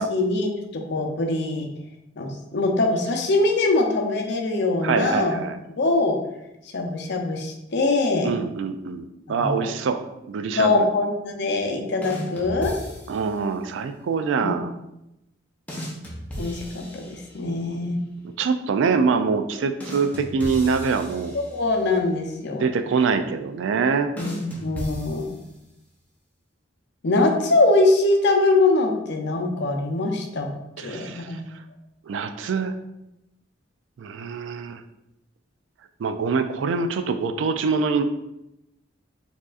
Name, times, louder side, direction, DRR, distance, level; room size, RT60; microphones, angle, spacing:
voice 1, 0.0-1.7 2.2-5.4 5.8-6.1 6.7-8.3 9.3-9.7 10.5-12.7 14.4-14.6 16.4-18.0 21.3-22.6 24.2-25.3 27.0-30.5 30.8-31.4, left 2 dB, 65° left, 2 dB, 0.6 m, -23 dB
voice 2, 4.8-5.6 8.2-10.0 10.3-10.8 13.1-14.7 17.6-17.8 18.4-21.3 22.6-24.1 30.8-31.6 32.1-32.8 34.0-34.8 36.0-38.0, right 5 dB, 70° right, 9 dB, 0.3 m, -24 dB
sound 1, 12.0-13.4 15.7-17.6 19.8-21.9 24.2-25.8, equal, 10° left, 0.7 m, -36 dB
4.5 x 2.8 x 2.4 m, 0.89 s
head